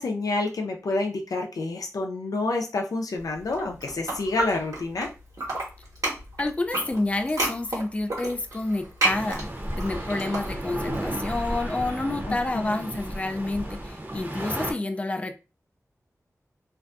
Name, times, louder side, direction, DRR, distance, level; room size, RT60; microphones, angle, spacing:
voice 1, 0.0-5.1 12.3-12.8, left 2 dB, 85° left, 3 dB, 0.4 m, -28 dB
sound 1, 3.4-5.1 5.3-11.0, right 1 dB, 80° right, 1.2 m, -31 dB
voice 2, 6.4-9.5 9.8-15.3, left 2 dB, 20° left, 7 dB, 0.3 m, -29 dB
sound 2, 9.0-14.7, right 1 dB, 35° right, 0.7 m, -33 dB
2.5 x 2.2 x 2.5 m, 0.30 s
wide cardioid pair, 55°, 6 cm